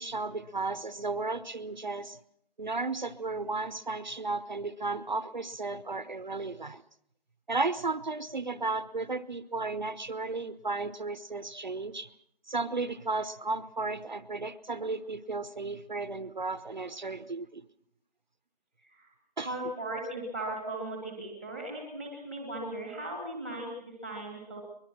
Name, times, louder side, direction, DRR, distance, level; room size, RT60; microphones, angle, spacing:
voice 1, 0.0-2.2 2.6-6.8 7.5-12.1 12.5-17.6 19.4-19.5, right 3 dB, 50° right, 14 dB, 0.9 m, -34 dB
voice 2, 19.4-24.6, right 1 dB, 5° left, 0 dB, 1.5 m, -37 dB
22.5 x 21.5 x 6.0 m, 0.71 s
figure-of-eight pair, 175°, 29 cm